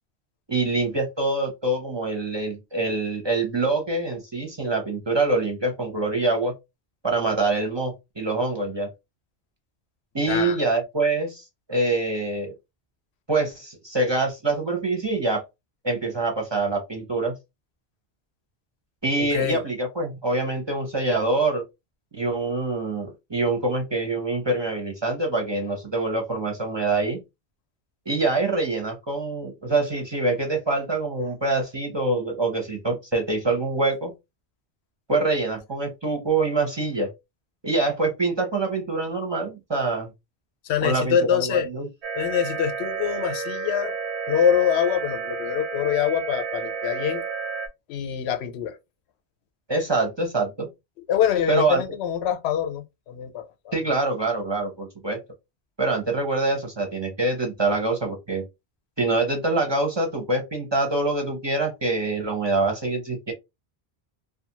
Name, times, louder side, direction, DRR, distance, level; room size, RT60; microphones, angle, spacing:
voice 1, 0.5-6.5 7.0-8.9 10.1-12.5 13.3-15.4 15.8-17.3 19.0-21.6 22.1-27.2 28.1-34.1 35.1-37.1 37.6-40.1 40.8-41.9 49.7-50.7 51.5-51.8 53.7-55.2 55.8-58.4 59.0-63.3, right 2 dB, 35° right, 0.5 m, -25 dB
voice 2, 10.3-10.6 19.2-19.6 40.6-41.7 42.1-44.0 44.2-47.2 47.9-48.8 51.1-53.8, left 8 dB, 85° left, 0.8 m, -24 dB
sound 1, 42.0-47.7, right 5 dB, 85° right, 0.9 m, -31 dB
2.4 x 2.3 x 2.8 m
omnidirectional pair, 1.1 m